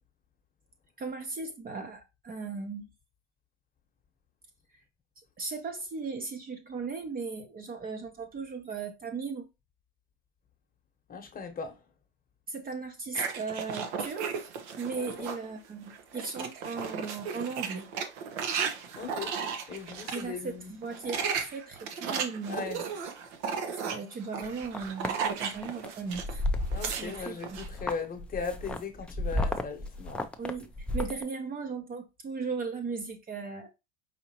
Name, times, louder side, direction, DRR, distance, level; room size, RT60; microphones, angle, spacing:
voice 1, 1.0-2.9 4.7-4.8 5.2-9.5 12.5-14.3 14.8-17.9 20.1-22.7 23.6-26.4 27.0-27.6 30.4-33.7, right 4 dB, 25° right, 0.7 m, -37 dB
voice 2, 11.1-11.8 14.9-15.1 19.0-19.4 19.7-20.7 21.1-21.2 22.5-22.8 26.7-30.3, left 5 dB, 25° left, 1.0 m, -38 dB
sound 1, 13.1-15.5 15.9-20.2 20.8-26.3 26.6-27.7, right 6 dB, 75° right, 0.9 m, -35 dB
sound 2, 24.4-25.1 25.6-25.9 26.1-27.3 27.6-31.2, left 1 dB, 5° left, 0.4 m, -32 dB
5.0 x 2.8 x 2.8 m
hypercardioid pair, 100°, 34 cm